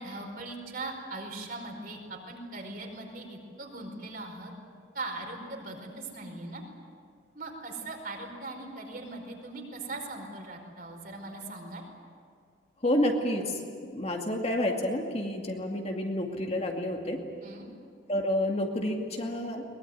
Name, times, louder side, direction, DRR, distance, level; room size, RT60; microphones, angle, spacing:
voice 1, 0.0-4.5 4.9-6.6 7.3-11.8 17.4-17.7, right 2 dB, 50° right, 2 dB, 4.9 m, -40 dB
voice 2, 12.8-13.6 13.9-17.2 18.1-19.6, left 1 dB, 35° left, 2 dB, 2.3 m, -29 dB
22.5 x 20.5 x 9.6 m, 2.1 s
head